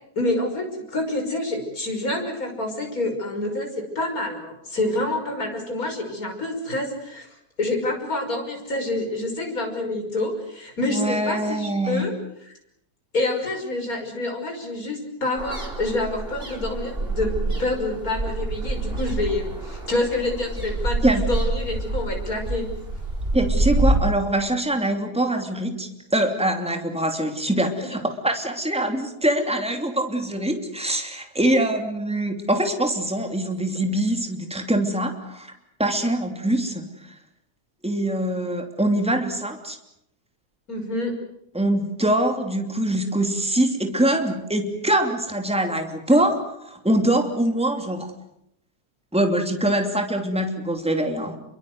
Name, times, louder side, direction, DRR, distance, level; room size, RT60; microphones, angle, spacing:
voice 1, 0.2-7.3 7.6-12.1 13.1-22.7 27.8-27.9 40.7-41.1, left 2 dB, 65° left, 3 dB, 6.3 m, -27 dB
voice 2, 10.9-12.1 21.0-21.2 23.3-35.5 35.8-36.9 37.8-39.8 41.5-48.1 49.1-51.4, right 1 dB, 5° right, 5 dB, 2.9 m, -23 dB
sound 1, 15.4-24.0, right 2 dB, 35° right, 4.6 m, -27 dB
28.5 x 23.5 x 8.0 m, 0.77 s
omnidirectional pair, 1.6 m